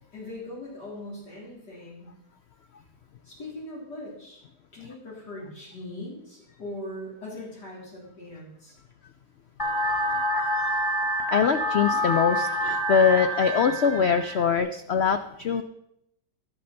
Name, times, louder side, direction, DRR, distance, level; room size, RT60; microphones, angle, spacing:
voice 1, 0.1-2.1 3.2-4.4 4.7-8.8, left 1 dB, 70° left, -6 dB, 4.0 m, -40 dB
sound 1, 9.6-14.6, equal, 15° left, 0.8 m, -27 dB
voice 2, 11.3-15.6, left 6 dB, 90° left, 9 dB, 0.5 m, -23 dB
11.5 x 8.5 x 5.8 m, 0.80 s
omnidirectional pair, 1.8 m